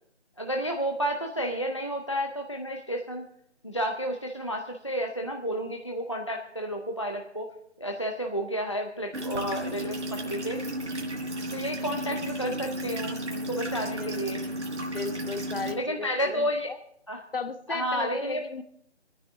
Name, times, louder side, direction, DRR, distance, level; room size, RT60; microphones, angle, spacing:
voice 1, 0.4-3.2 3.6-7.5 7.8-10.6 11.5-14.4 15.7-16.7 17.1-17.2 17.7-18.4, equal, 25° left, 1 dB, 0.6 m, -31 dB
sound 1, 9.1-15.7, right 1 dB, 90° right, 4.3 m, -33 dB
voice 2, 14.9-16.8 17.3-18.6, left 4 dB, 50° left, 9 dB, 1.2 m, -35 dB
27.5 x 9.8 x 3.6 m, 0.71 s
figure-of-eight pair, 175°, 35 cm